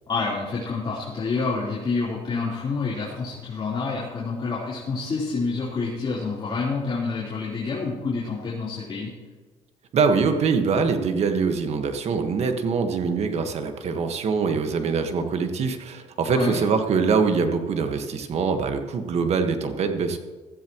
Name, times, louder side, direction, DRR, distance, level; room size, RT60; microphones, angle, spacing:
voice 1, 0.1-9.1 16.3-16.6, left 4 dB, 40° left, -8 dB, 3.9 m, -28 dB
voice 2, 9.9-20.2, right 5 dB, 60° right, 6 dB, 1.6 m, -23 dB
16.0 x 14.5 x 3.1 m, 1.4 s
cardioid pair, 95°, 12 cm